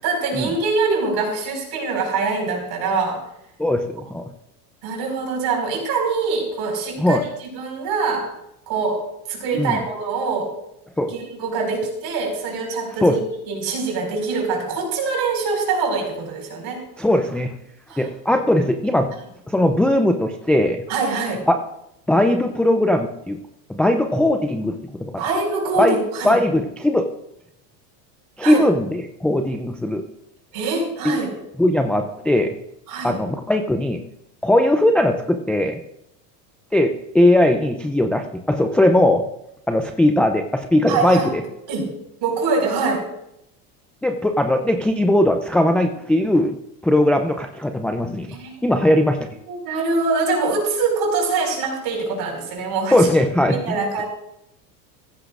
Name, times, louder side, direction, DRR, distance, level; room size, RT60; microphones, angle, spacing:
voice 1, 0.0-3.2 4.8-7.2 7.5-8.3 8.7-10.5 11.1-13.2 13.5-16.8 17.9-18.0 20.9-21.4 25.2-26.4 28.4-28.6 30.5-31.3 32.9-33.2 40.9-41.3 41.7-41.9 42.2-43.0 48.3-49.0 49.5-53.1 53.5-54.0, right 4 dB, 50° right, 1 dB, 5.2 m, -24 dB
voice 2, 3.6-4.3 7.0-7.2 9.5-9.8 11.0-11.1 13.0-13.2 17.0-17.5 18.0-19.1 19.5-20.8 21.5-21.6 22.1-23.4 23.7-25.2 25.8-26.0 26.2-27.1 28.4-30.0 31.0-31.2 31.6-32.5 33.0-34.0 34.4-35.8 36.7-39.2 39.7-41.4 44.0-46.6 46.8-48.4 48.6-49.3 52.9-54.0, left 1 dB, 5° left, 5 dB, 0.4 m, -19 dB
15.0 x 15.0 x 2.5 m, 0.81 s
supercardioid pair, 115°, 48 cm